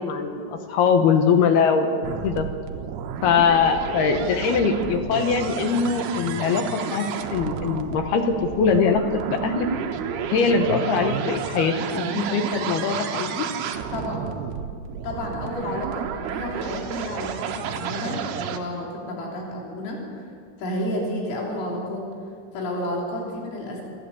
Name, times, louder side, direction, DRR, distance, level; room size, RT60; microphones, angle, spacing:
voice 1, 0.0-2.5 3.2-9.7 10.3-13.5, left 5 dB, 70° left, 6 dB, 2.6 m, -22 dB
sound 1, 2.0-18.6, right 8 dB, 70° right, 2.6 m, -31 dB
voice 2, 13.9-14.3 15.0-20.0 20.6-22.1 22.5-23.8, left 1 dB, 90° left, -2 dB, 6.0 m, -31 dB
28.5 x 12.0 x 8.5 m, 2.2 s
omnidirectional pair, 5.7 m